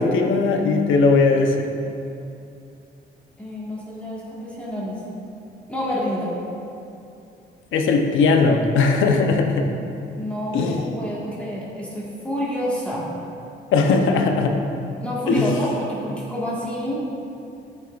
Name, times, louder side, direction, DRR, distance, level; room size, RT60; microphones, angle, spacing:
voice 1, 0.0-1.6 7.7-9.7 10.5-10.8 13.7-14.6 15.3-15.5, left 4 dB, 80° left, 3 dB, 0.8 m, -18 dB
voice 2, 3.4-5.0 5.7-6.3 10.2-13.1 15.0-17.0, equal, 5° left, -7 dB, 1.7 m, -28 dB
12.5 x 5.4 x 2.5 m, 2.6 s
cardioid pair, 90°, 20 cm